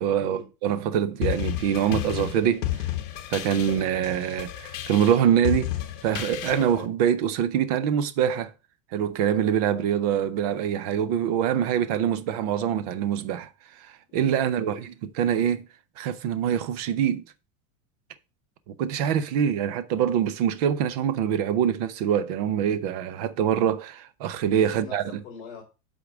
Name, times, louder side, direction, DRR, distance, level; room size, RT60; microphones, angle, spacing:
voice 1, 0.0-2.9 3.3-5.7 6.0-8.5 8.9-13.5 13.8-15.6 16.0-17.2 18.7-25.0, right 9 dB, 30° right, 0.4 m, -24 dB
sound 1, 1.2-6.9, left 13 dB, 65° left, 1.2 m, -32 dB
voice 2, 14.4-14.8 24.7-25.6, left 5 dB, 30° left, 2.7 m, -43 dB
8.2 x 3.7 x 5.9 m
supercardioid pair, 175°, 40 cm